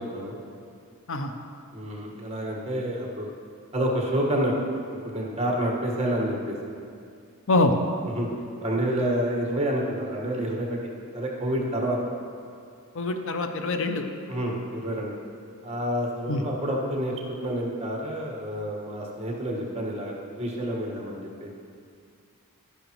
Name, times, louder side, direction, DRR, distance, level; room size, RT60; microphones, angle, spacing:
voice 1, 1.7-3.3 3.7-4.5 5.0-6.6 8.0-8.3 8.6-10.8 11.1-12.0 14.3-15.2 15.6-17.1 17.4-21.5, right 1 dB, 30° right, -1 dB, 1.5 m, -28 dB
voice 2, 13.0-14.0 16.3-16.4, left 2 dB, 60° left, 6 dB, 0.6 m, -24 dB
12.0 x 10.0 x 3.1 m, 2.3 s
head